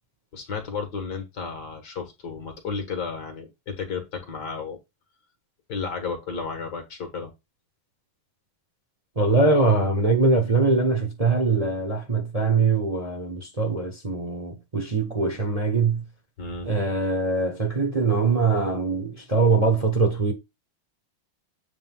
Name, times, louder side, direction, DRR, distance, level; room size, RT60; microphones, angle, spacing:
voice 1, 0.3-4.8 5.7-7.3 16.4-16.7, left 5 dB, 60° left, 2.1 m, -33 dB
voice 2, 9.2-16.0 16.6-20.3, right 3 dB, 25° right, 0.9 m, -22 dB
8.1 x 3.3 x 3.6 m
omnidirectional pair, 2.1 m